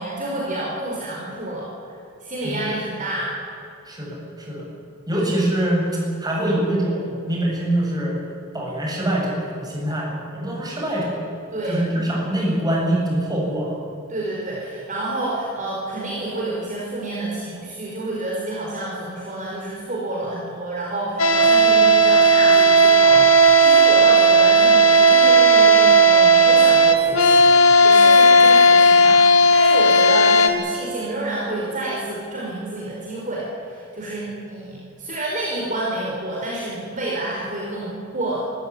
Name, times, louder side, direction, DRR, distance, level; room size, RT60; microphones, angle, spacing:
voice 1, 0.0-1.7 2.2-3.3 5.1-5.3 11.5-11.8 14.1-38.4, right 2 dB, 40° right, -5 dB, 5.0 m, -29 dB
voice 2, 3.9-4.7 5.1-8.2 8.5-11.2 11.6-13.8, right 1 dB, 20° right, -3 dB, 7.6 m, -24 dB
sound 1, 21.2-30.5, right 2 dB, 75° left, 2.4 m, -13 dB
25.0 x 14.5 x 9.9 m, 2.5 s
head